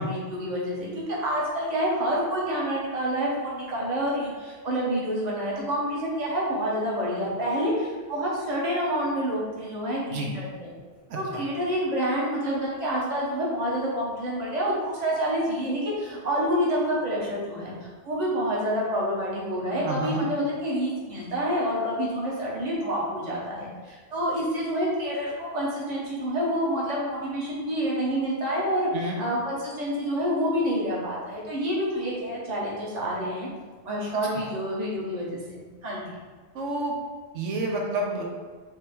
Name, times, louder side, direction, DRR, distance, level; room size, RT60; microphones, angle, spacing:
voice 1, 0.0-10.7 11.1-33.5 33.8-35.4 35.8-36.1, equal, 35° right, -5 dB, 1.1 m, -28 dB
voice 2, 11.1-11.4 19.8-20.2 28.9-29.2 36.5-37.0 37.3-38.2, right 2 dB, 90° right, 0 dB, 1.1 m, -29 dB
5.1 x 2.8 x 3.6 m, 1.5 s
omnidirectional pair, 1.2 m